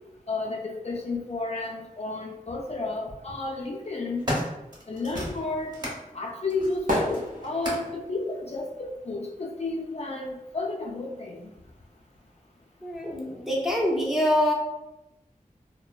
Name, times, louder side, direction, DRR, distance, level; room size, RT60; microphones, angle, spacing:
voice 1, 0.3-4.3 4.9-5.7 6.1-11.4, left 3 dB, 45° left, -1 dB, 0.4 m, -32 dB
sound 1, 1.6-1.7 2.8-3.2 3.7-6.0 6.5-8.0 8.8-8.9, equal, 30° right, 1.0 m, -35 dB
sound 2, 5.1-10.1 10.4-12.0 12.2-12.3, equal, 65° right, 0.7 m, -34 dB
voice 2, 12.8-14.5, left 1 dB, 5° right, -3 dB, 0.6 m, -25 dB
2.8 x 2.1 x 2.3 m, 0.93 s
wide cardioid pair, 40°, 15 cm